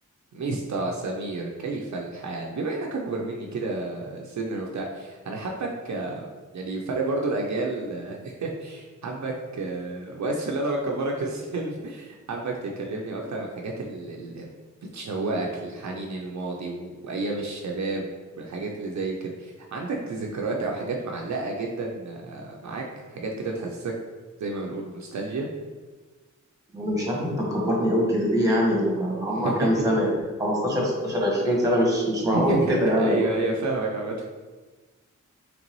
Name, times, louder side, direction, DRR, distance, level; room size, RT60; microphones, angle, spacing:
voice 1, 0.3-14.5 14.9-18.1 18.4-23.9 24.4-25.5 29.3-29.8 32.3-34.2, right 3 dB, 65° right, 0 dB, 0.6 m, -30 dB
voice 2, 26.7-33.5, equal, 10° right, -3 dB, 1.3 m, -23 dB
3.9 x 3.3 x 3.1 m, 1.3 s
cardioid pair, 70°, 30 cm